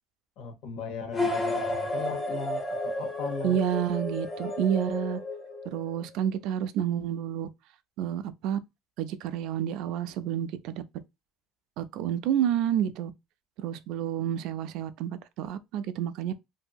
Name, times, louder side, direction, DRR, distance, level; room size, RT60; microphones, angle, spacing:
voice 1, 0.4-3.6, left 5 dB, 70° left, 1.0 m, -38 dB
sound 1, 1.1-5.9, left 2 dB, 10° left, 0.8 m, -32 dB
voice 2, 3.4-5.2 5.6-7.5 8.0-8.6 9.0-10.8 11.8-13.1 13.6-16.3, right 10 dB, 65° right, 0.3 m, -29 dB
2.7 x 2.7 x 2.3 m
cardioid pair, 135°, 0 cm